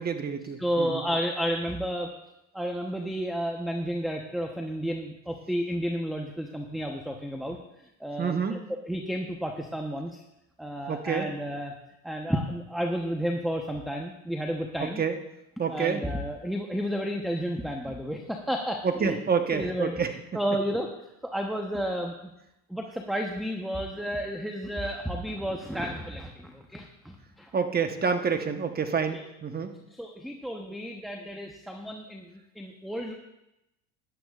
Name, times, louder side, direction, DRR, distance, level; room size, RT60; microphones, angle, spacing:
voice 1, 0.0-1.0 8.2-8.6 10.9-11.3 14.8-15.2 15.6-16.0 18.8-20.1 27.5-29.7, right 6 dB, 25° right, 6 dB, 1.2 m, -28 dB
voice 2, 0.6-2.1 2.5-7.6 8.0-8.6 8.9-10.2 10.6-11.7 12.0-15.0 15.7-19.2 19.5-19.9 20.3-20.9 21.2-22.1 22.7-27.5 29.1-29.2 29.9-33.1, equal, ahead, 2 dB, 1.0 m, -31 dB
17.0 x 11.0 x 2.5 m, 0.87 s
supercardioid pair, 100°, 41 cm